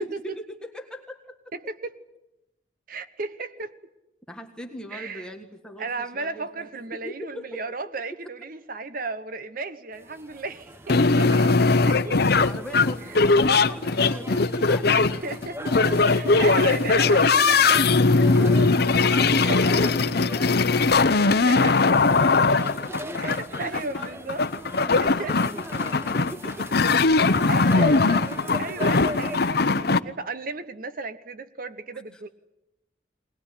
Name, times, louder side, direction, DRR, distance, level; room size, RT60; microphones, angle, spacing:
voice 1, 0.0-1.4 4.3-7.6 12.4-15.0 19.1-23.2 23.6-24.1 24.8-28.0 28.5-28.8 32.1-32.2, equal, 5° left, 1.6 m, -40 dB
voice 2, 1.5-2.0 2.9-3.7 4.9-5.3 5.8-12.1 13.0-13.1 14.9-15.7 16.1-17.9 19.4-19.9 21.5-21.8 23.2-24.4 25.0-25.3 27.5-27.9 28.6-32.3, right 3 dB, 50° right, 1.0 m, -35 dB
sound 1, 9.9-29.5, equal, 15° right, 1.2 m, -39 dB
sound 2, 10.9-30.0, left 3 dB, 60° left, 0.9 m, -20 dB
21.5 x 20.0 x 10.0 m
head